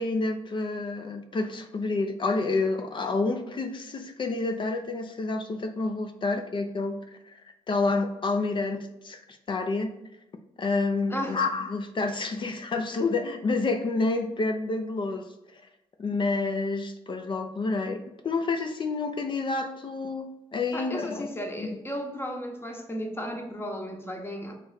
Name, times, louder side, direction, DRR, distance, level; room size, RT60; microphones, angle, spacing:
voice 1, 0.0-7.0 7.7-9.2 9.5-9.9 10.6-15.3 16.0-21.3 21.6-21.8, left 3 dB, 40° left, 6 dB, 0.5 m, -29 dB
voice 2, 20.7-24.5, equal, 15° left, 2 dB, 0.9 m, -34 dB
3.2 x 2.5 x 3.9 m, 0.91 s
supercardioid pair, 60°, 13 cm